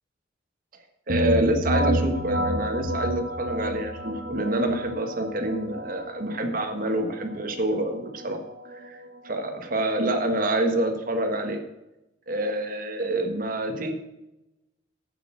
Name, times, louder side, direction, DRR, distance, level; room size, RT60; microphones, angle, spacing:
voice 1, 1.1-8.4 8.7-11.6 12.3-13.9, right 1 dB, 50° right, 6 dB, 1.5 m, -27 dB
sound 1, 1.1-10.7, right 1 dB, 75° right, 1.6 m, -30 dB
9.1 x 8.7 x 6.2 m, 0.95 s
head